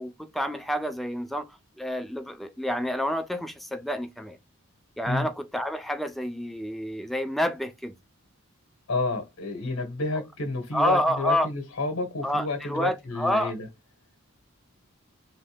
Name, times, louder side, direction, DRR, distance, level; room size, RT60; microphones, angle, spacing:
voice 1, 0.0-4.4 5.0-7.9 10.7-11.5 12.2-13.5, equal, ahead, 0.3 m, -28 dB
voice 2, 8.9-13.7, left 2 dB, 80° left, 1.3 m, -30 dB
3.9 x 3.3 x 3.4 m
head